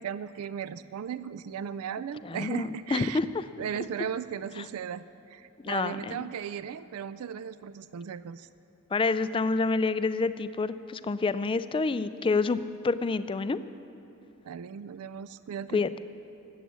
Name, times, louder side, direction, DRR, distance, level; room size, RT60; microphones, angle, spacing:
voice 1, 0.0-3.2 3.6-8.5 14.4-15.8, right 8 dB, 75° right, 15 dB, 0.4 m, -36 dB
voice 2, 2.2-3.3 5.6-6.2 8.9-13.6 15.7-15.9, left 4 dB, 25° left, 13 dB, 0.3 m, -28 dB
13.5 x 8.3 x 8.3 m, 3.0 s
head